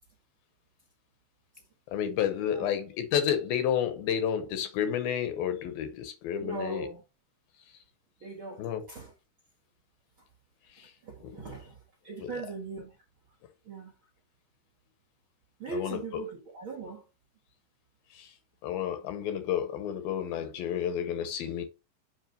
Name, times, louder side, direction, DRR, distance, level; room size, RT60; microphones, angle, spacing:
voice 1, 1.9-6.9 8.6-8.8 10.8-10.9 11.2-11.3 12.2-12.3 15.7-16.0 18.1-18.3 18.6-21.6, left 9 dB, 75° left, 2.5 m, -30 dB
voice 2, 2.5-2.8 6.4-7.0 8.2-9.1 10.8-13.0 13.6-13.9 15.6-17.0, right 4 dB, 60° right, 1.3 m, -40 dB
7.4 x 3.3 x 5.1 m
omnidirectional pair, 4.5 m